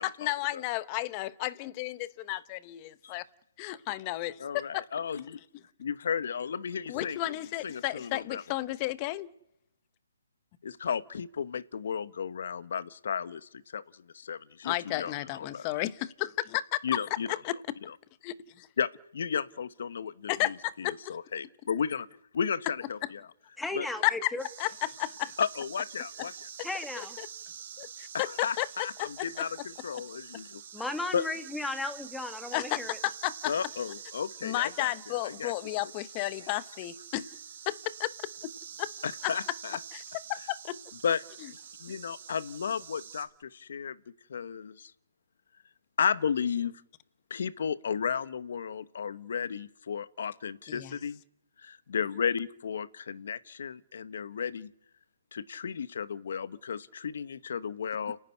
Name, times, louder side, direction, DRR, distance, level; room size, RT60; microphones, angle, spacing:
voice 1, 0.0-3.3 3.6-4.8 6.9-9.3 14.6-16.8 17.4-17.6 18.2-18.7 20.3-21.2 24.0-24.3 24.6-25.3 26.6-26.7 27.0-27.3 27.8-28.7 29.0-29.5 32.5-33.5 34.4-37.3 37.7-38.1 38.4-38.5 38.8-38.9 39.2-39.3 39.9-40.0 40.3-40.8 50.7-50.9, left 17 dB, 25° left, 1.0 m, -33 dB
voice 2, 4.4-5.4 5.8-7.2 7.6-8.4 10.6-15.8 16.8-17.4 17.9-18.0 18.8-22.1 22.3-23.2 23.8-23.9 25.4-26.3 28.1-30.6 31.1-31.2 33.5-35.5 39.0-39.8 41.0-44.0 44.3-44.9 46.0-46.8 47.3-51.2 51.6-54.7 55.3-58.2, left 7 dB, 60° left, 1.0 m, -34 dB
voice 3, 23.6-24.4 26.6-27.2 30.7-33.0, left 2 dB, 5° left, 1.3 m, -35 dB
sound 1, 24.4-43.2, right 8 dB, 50° right, 3.8 m, -46 dB
29.5 x 11.0 x 9.8 m
hypercardioid pair, 150°, 0 cm